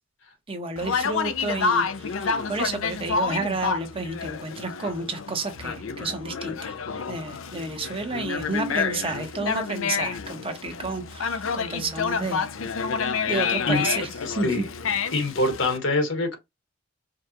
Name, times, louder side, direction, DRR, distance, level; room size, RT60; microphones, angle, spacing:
voice 1, 0.5-6.8 7.1-12.5 13.3-14.1 14.3-14.6, right 3 dB, 30° right, 1.1 m, -31 dB
Conversation, 0.8-15.8, left 5 dB, 85° left, 0.6 m, -29 dB
voice 2, 14.2-14.7 15.1-16.4, left 2 dB, 65° left, 1.3 m, -24 dB
5.1 x 2.4 x 2.9 m
head